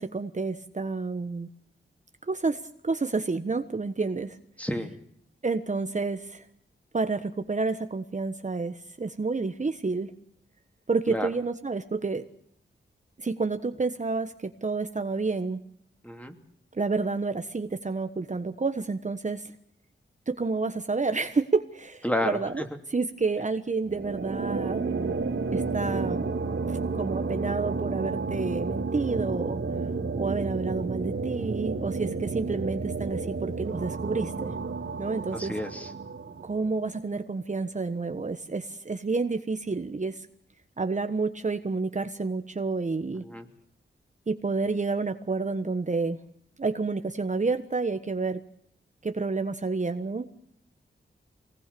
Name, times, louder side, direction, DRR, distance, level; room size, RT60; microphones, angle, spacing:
voice 1, 0.0-1.5 2.3-4.4 5.4-6.4 6.9-10.1 10.9-12.2 13.2-15.6 16.7-19.5 20.3-22.6 22.9-24.8 25.5-26.2 26.7-29.6 30.2-34.5 35.0-35.5 36.4-40.3 40.8-43.2 44.3-46.2 46.6-48.4 49.0-50.3, right 4 dB, 35° right, 8 dB, 1.3 m, -29 dB
voice 2, 4.6-4.9 11.1-11.3 16.0-16.4 22.0-22.6 35.3-35.9 43.2-43.5, left 1 dB, 5° left, 6 dB, 3.0 m, -30 dB
sound 1, 23.8-37.0, right 4 dB, 70° right, 2.7 m, -31 dB
25.0 x 19.0 x 6.9 m, 0.70 s
wide cardioid pair, 90°, 20 cm